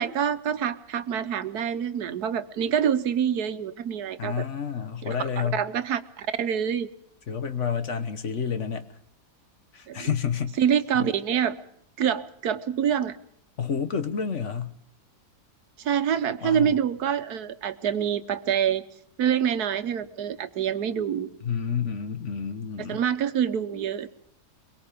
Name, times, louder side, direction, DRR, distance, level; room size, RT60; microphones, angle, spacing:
voice 1, 0.0-4.4 5.0-5.2 5.5-6.9 9.9-10.1 10.6-11.6 12.0-13.1 15.8-18.8 19.2-21.3 22.9-24.1, right 8 dB, 85° right, 10 dB, 1.5 m, -26 dB
voice 2, 4.2-5.6 7.3-8.9 9.7-10.6 13.6-14.7 16.4-16.8 21.4-23.0, left 7 dB, 55° left, 9 dB, 1.4 m, -29 dB
23.0 x 22.5 x 5.2 m, 0.72 s
omnidirectional pair, 1.6 m